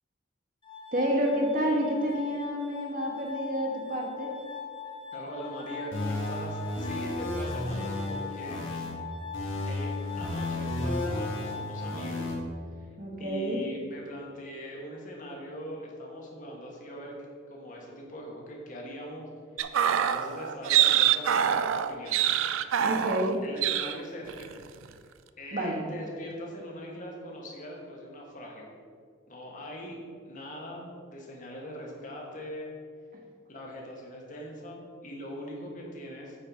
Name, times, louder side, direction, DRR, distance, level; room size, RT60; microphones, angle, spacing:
Glass, 0.6-12.6, left 6 dB, 25° left, 0.8 m, -41 dB
voice 1, 0.9-4.3 13.0-13.6 22.8-23.4 25.5-25.8, equal, 45° right, -1 dB, 1.4 m, -29 dB
voice 2, 5.1-8.7 9.6-12.3 12.8-12.9 13.2-17.2 17.5-19.3 19.6-22.3 22.7-23.1 23.4-24.5 25.4-28.7 29.3-32.7 33.5-36.4, equal, 40° left, -1 dB, 1.4 m, -41 dB
sound 1, 5.9-8.9 9.3-12.3, left 1 dB, 75° left, 1.5 m, -33 dB
sound 2, 19.6-23.4 23.6-24.0 24.3-24.5, right 10 dB, 80° right, 0.4 m, -25 dB
8.7 x 4.5 x 4.9 m, 2.1 s
head